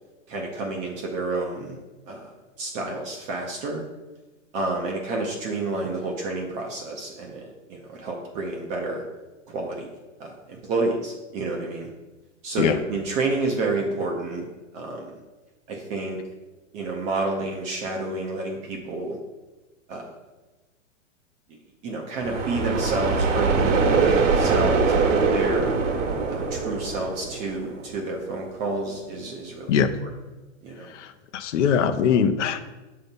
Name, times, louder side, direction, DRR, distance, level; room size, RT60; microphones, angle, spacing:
voice 1, 0.3-1.8 2.1-2.3 2.6-3.8 4.5-9.0 9.5-9.9 10.2-11.9 12.4-14.5 14.7-15.1 15.7-16.2 16.7-19.2 19.9-20.1 21.8-25.7 26.3-29.8 30.6-30.9, right 2 dB, 20° right, 0 dB, 0.4 m, -29 dB
sound 1, 22.2-27.9, right 4 dB, 65° right, 1.0 m, -23 dB
voice 2, 30.9-32.6, left 7 dB, 65° left, 9 dB, 0.7 m, -22 dB
6.9 x 2.8 x 5.2 m, 1.2 s
hypercardioid pair, 135°, 39 cm